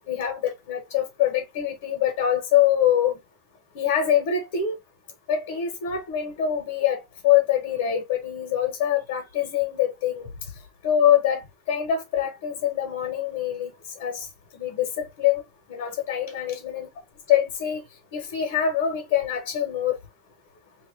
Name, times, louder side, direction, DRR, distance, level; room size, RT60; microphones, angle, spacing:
voice 1, 0.1-3.2 3.7-4.7 5.3-10.3 10.8-11.4 11.7-13.7 14.0-14.3 14.5-15.4 15.7-16.9 17.3-17.8 18.1-20.0, left 10 dB, 80° left, 1.5 m, -24 dB
3.2 x 2.8 x 3.4 m
cardioid pair, 170°, 0 cm